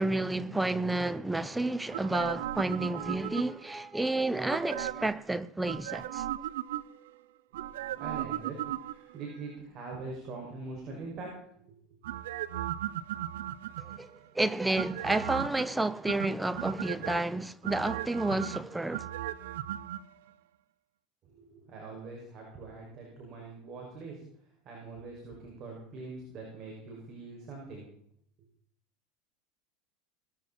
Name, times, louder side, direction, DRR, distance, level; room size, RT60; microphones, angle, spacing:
voice 1, 0.0-6.3 14.0-14.1 14.3-19.0, right 2 dB, 10° right, 0.7 m, -30 dB
sound 1, 1.9-3.7 4.5-5.2 5.6-7.1 7.5-9.2 12.0-14.2 14.8-15.7 16.1-17.2 17.6-20.0 20.3-20.4, right 13 dB, 80° right, 0.8 m, -36 dB
voice 2, 7.7-11.3 11.7-11.8 21.2-24.2 24.6-27.9, right 3 dB, 45° right, 6.3 m, -43 dB
20.0 x 13.5 x 4.4 m
hypercardioid pair, 100°, 0 cm